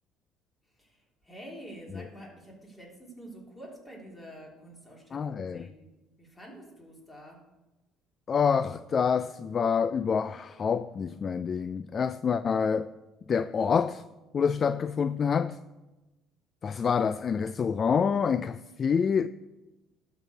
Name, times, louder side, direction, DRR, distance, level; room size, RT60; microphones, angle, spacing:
voice 1, 0.7-5.9 6.2-7.5, right 1 dB, 15° left, 3.3 m, -48 dB
voice 2, 5.1-5.7 8.3-12.9 13.3-14.0 14.3-15.6 16.6-19.3, left 6 dB, 40° left, 0.3 m, -27 dB
12.0 x 4.7 x 6.7 m
cardioid pair, 100°, 0 cm